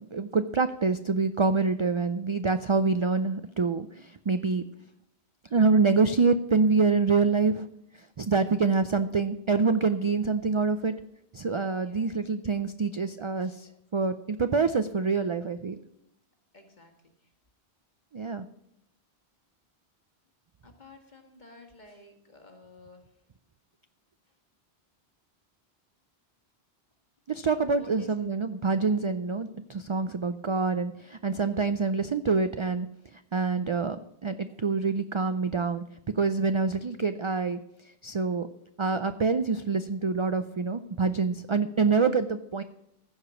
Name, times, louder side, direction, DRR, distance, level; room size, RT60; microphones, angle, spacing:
voice 1, 0.1-4.6 5.5-7.7 8.2-10.9 11.3-15.8 18.1-18.5 27.3-32.9 33.1-34.0 34.2-35.8 36.1-37.6 38.0-38.5 38.8-42.6, right 4 dB, 50° right, 10 dB, 0.3 m, -26 dB
voice 2, 11.7-12.2 13.4-13.6 16.5-17.1 20.6-23.0 27.8-28.1, left 2 dB, 45° left, 3 dB, 1.9 m, -52 dB
15.0 x 5.0 x 7.0 m, 0.80 s
omnidirectional pair, 1.1 m